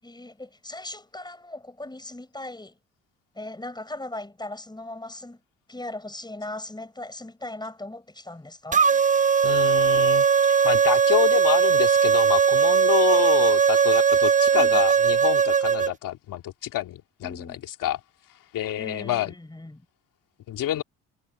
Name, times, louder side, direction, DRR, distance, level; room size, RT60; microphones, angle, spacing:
voice 1, 0.0-2.8 3.4-5.4 5.7-8.9 14.5-14.8 17.2-17.6 18.8-19.9, left 2 dB, 10° left, 7.0 m, -38 dB
sound 1, 8.7-15.9, right 6 dB, 25° right, 0.7 m, -19 dB
voice 2, 9.4-10.3 10.6-18.0 18.5-19.3 20.5-20.8, left 12 dB, 70° left, 2.8 m, -27 dB
supercardioid pair, 65°, 34 cm